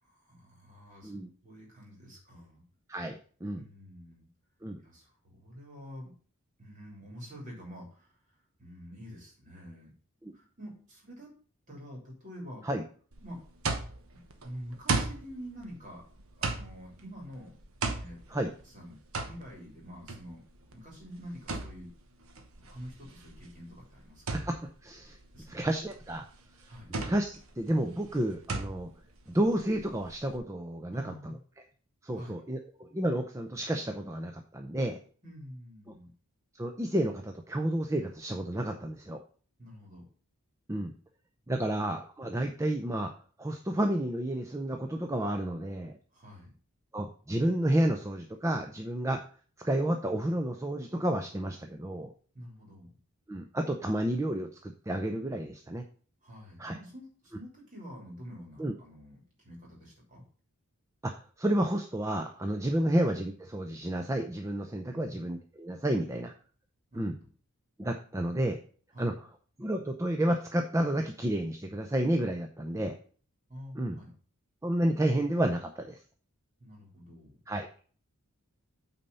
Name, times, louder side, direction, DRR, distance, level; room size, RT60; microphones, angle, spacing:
voice 1, 0.0-1.1 1.4-2.6 3.5-4.3 4.8-6.1 6.6-8.1 8.6-9.9 10.3-11.3 11.7-12.6 13.2-13.4 14.1-16.0 16.3-17.5 17.9-20.4 20.7-21.9 22.5-24.5 25.3-25.6 26.7-26.9 30.9-31.4 32.1-32.4 35.2-36.1 39.6-40.0 46.1-46.5 52.3-52.9 56.2-60.2 62.8-62.9 64.9-65.3 66.9-67.1 68.9-69.1 73.5-74.1 76.6-77.4, equal, 35° right, -2 dB, 3.2 m, -47 dB
voice 2, 2.9-3.6 4.6-4.8 10.2-10.3 12.6-12.8 18.3-18.5 24.3-25.2 25.5-26.3 26.9-28.9 29.3-31.4 32.0-35.0 36.5-39.2 40.7-40.9 41.5-43.1 43.4-45.9 46.9-49.2 49.6-52.1 53.3-55.8 56.6-56.7 58.6-58.7 61.0-66.3 66.9-67.1 67.8-68.6 69.0-69.1 69.6-73.0 73.8-74.0 74.6-76.0 77.5-77.7, right 1 dB, 15° right, 4 dB, 0.5 m, -31 dB
sound 1, 13.1-30.4, right 3 dB, 70° right, 1.1 m, -38 dB
8.8 x 4.2 x 5.4 m, 0.43 s
head